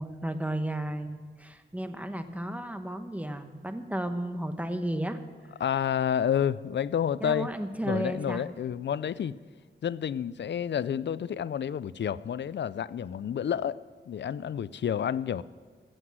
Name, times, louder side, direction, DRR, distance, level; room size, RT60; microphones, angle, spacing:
voice 1, 0.0-5.2 7.2-8.4, right 1 dB, 5° right, 8 dB, 1.0 m, -33 dB
voice 2, 5.6-7.5 7.8-9.4 9.8-15.4, left 9 dB, 70° left, 18 dB, 0.4 m, -30 dB
15.0 x 8.0 x 7.5 m, 1.5 s
wide cardioid pair, 90°, 19 cm